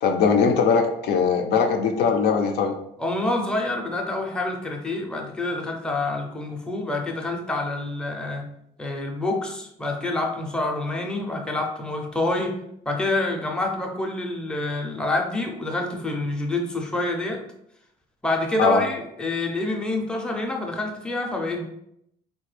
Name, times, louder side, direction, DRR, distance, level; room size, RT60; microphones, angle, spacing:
voice 1, 0.0-2.7 18.6-18.8, left 5 dB, 75° left, 4 dB, 0.5 m, -20 dB
voice 2, 3.0-8.5 8.8-12.6 12.9-17.4 18.2-21.7, left 2 dB, 5° left, 0 dB, 0.5 m, -27 dB
3.3 x 2.2 x 3.2 m, 0.76 s
cardioid pair, 110°, 17 cm